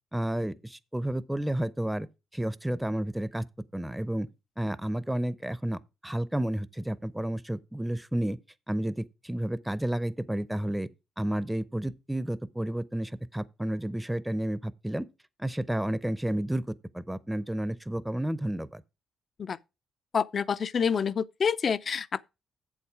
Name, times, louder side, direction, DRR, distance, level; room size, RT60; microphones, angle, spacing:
voice 1, 0.1-2.1 2.3-3.5 3.7-4.3 4.6-8.4 8.7-10.9 11.2-15.1 15.4-18.8, right 1 dB, 5° right, 0.6 m, -31 dB
voice 2, 20.1-22.2, left 6 dB, 45° left, 0.5 m, -27 dB
8.0 x 7.2 x 4.8 m
cardioid pair, 90°, 0 cm